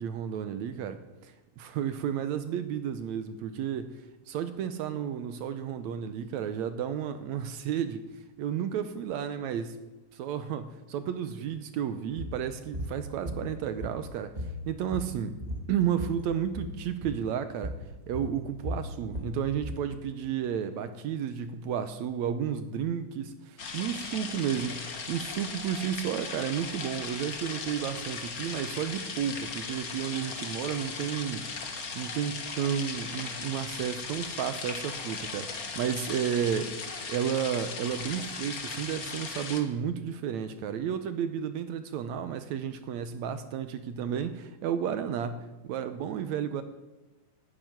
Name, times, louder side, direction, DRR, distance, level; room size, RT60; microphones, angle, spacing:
voice 1, 0.0-3.9 4.3-8.1 8.4-9.8 10.1-14.3 14.7-15.4 15.7-17.7 18.1-31.5 32.0-36.7 37.1-46.6, right 9 dB, 70° right, 11 dB, 1.9 m, -32 dB
sound 1, 12.2-12.4 12.7-12.9 13.3-14.1 14.4-16.2 16.5-16.7 17.0-17.2 17.6-17.8 18.1-19.8, equal, 15° right, 1.4 m, -36 dB
sound 2, 23.6-39.6, left 4 dB, 50° left, 1.1 m, -38 dB
12.5 x 10.0 x 9.4 m, 1.1 s
omnidirectional pair, 3.7 m